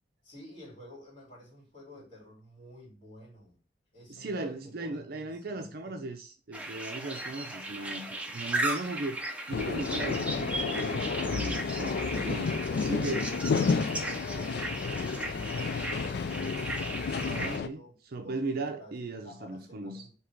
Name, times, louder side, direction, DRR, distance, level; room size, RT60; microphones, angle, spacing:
voice 1, 0.2-3.6 3.9-6.0 12.5-18.0 18.2-20.1, equal, 30° left, 2.4 m, -51 dB
voice 2, 4.1-9.2 9.5-12.6 12.9-13.3 17.2-20.1, right 2 dB, 55° right, 0.5 m, -37 dB
sound 1, 6.5-17.6, right 1 dB, 5° right, 0.7 m, -36 dB
sound 2, 9.5-17.7, left 5 dB, 60° left, 0.4 m, -31 dB
3.7 x 2.9 x 4.5 m
head